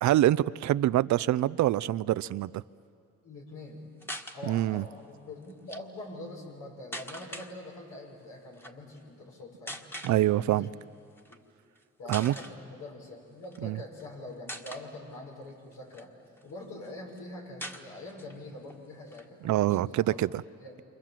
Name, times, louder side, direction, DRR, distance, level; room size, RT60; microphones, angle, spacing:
voice 1, 0.0-2.6 4.4-4.8 10.0-10.7 12.1-12.3 13.6-13.8 19.4-20.3, right 14 dB, 70° right, 0.5 m, -25 dB
voice 2, 3.2-3.9 4.3-9.8 10.4-10.7 12.0-16.1 16.4-20.2 20.6-20.7, left 2 dB, 85° left, 6.5 m, -44 dB
sound 1, 4.0-4.4 5.5-5.8 6.9-7.5 8.5-8.7 9.7-10.2 11.2-11.4 11.8-11.9 12.1-12.5 13.4-14.1 14.5-14.9 15.5-16.5 16.8-16.9 17.1-17.2 17.6-18.4 18.7-18.8 19.1-20.2, equal, 5° left, 1.7 m, -42 dB
28.5 x 25.5 x 7.6 m
cardioid pair, 90°, 30 cm